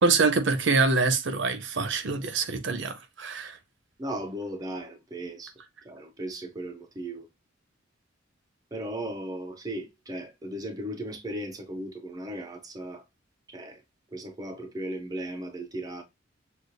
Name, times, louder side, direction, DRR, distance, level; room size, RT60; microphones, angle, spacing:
voice 1, 0.0-3.6, right 4 dB, 60° right, 0.6 m, -25 dB
voice 2, 4.0-5.5 5.8-7.3 8.7-13.0 13.5-13.8 14.1-16.0, right 1 dB, 20° right, 0.4 m, -36 dB
6.3 x 2.3 x 2.6 m
head